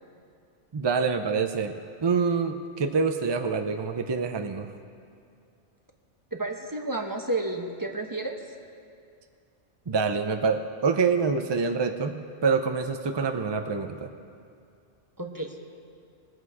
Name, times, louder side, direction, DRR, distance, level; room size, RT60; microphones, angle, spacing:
voice 1, 0.7-1.8 2.0-4.7 9.9-14.1, right 5 dB, 40° right, 6 dB, 0.3 m, -26 dB
voice 2, 6.3-8.4 15.2-15.6, right 2 dB, 20° right, 2 dB, 0.9 m, -31 dB
21.0 x 7.7 x 4.8 m, 2.4 s
omnidirectional pair, 1.2 m